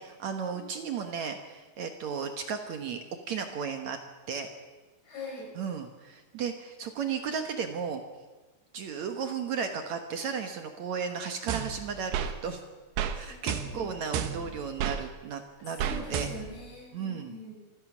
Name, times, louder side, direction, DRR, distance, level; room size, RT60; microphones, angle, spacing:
voice 1, 0.0-3.0 3.3-4.0 4.3-4.5 5.6-8.0 8.7-12.6 13.1-16.3 16.9-17.4, right 6 dB, 60° right, 6 dB, 2.1 m, -34 dB
voice 2, 5.0-5.5 13.3-13.9 15.8-17.5, left 2 dB, 90° left, -1 dB, 8.1 m, -43 dB
sound 1, 11.5-12.3 13.0-13.2 13.5-15.0 15.8-16.6, right 8 dB, 90° right, 3.2 m, -32 dB
25.5 x 15.5 x 7.3 m, 1.3 s
omnidirectional pair, 4.4 m